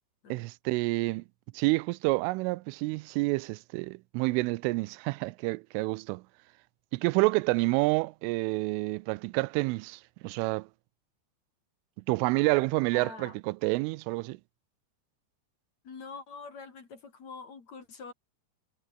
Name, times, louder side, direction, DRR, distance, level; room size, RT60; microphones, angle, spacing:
voice 1, 0.3-1.2 1.5-6.2 6.9-10.7 12.1-14.4, right 24 dB, 90° right, 3.1 m, -28 dB
voice 2, 12.9-13.4 15.8-18.1, left 5 dB, 40° left, 3.8 m, -45 dB
omnidirectional pair, 5.6 m